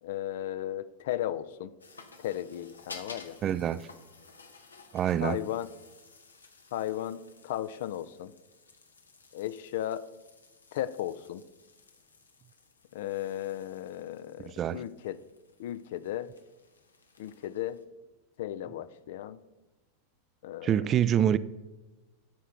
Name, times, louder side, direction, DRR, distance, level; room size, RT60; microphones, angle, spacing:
voice 1, 0.0-1.7 2.2-3.4 5.2-5.7 6.7-8.3 9.3-10.0 10.7-11.4 12.9-15.2 15.6-16.3 17.2-17.8 18.4-19.4 20.4-20.9, left 12 dB, 65° left, 0.4 m, -35 dB
sound 1, 1.8-17.8, left 4 dB, 90° left, 0.8 m, -54 dB
voice 2, 3.4-3.9 4.9-5.4 14.5-14.8 20.6-21.4, right 10 dB, 35° right, 0.3 m, -26 dB
12.0 x 5.6 x 3.8 m
hypercardioid pair, 95°, 0 cm